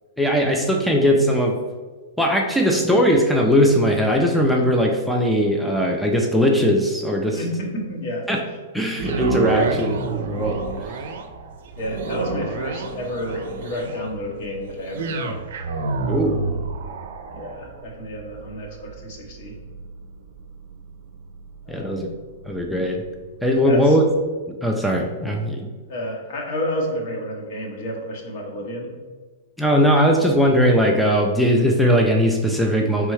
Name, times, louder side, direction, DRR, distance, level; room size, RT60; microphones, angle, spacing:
voice 1, 0.2-1.6 2.2-7.4 8.3-8.4 8.7-10.6 16.1-16.4 21.7-22.1 22.5-23.0 23.4-24.0 24.6-25.7 29.6-33.1, equal, ahead, 0 dB, 0.4 m, -19 dB
voice 2, 7.3-8.3 11.8-15.3 17.3-19.5 21.7-22.0 23.6-23.9 25.9-28.9, equal, 60° left, 0 dB, 1.2 m, -30 dB
sound 1, 8.9-23.1 23.6-23.7, right 4 dB, 70° right, 0.5 m, -29 dB
4.4 x 3.5 x 3.1 m, 1.4 s
hypercardioid pair, 135°, 0 cm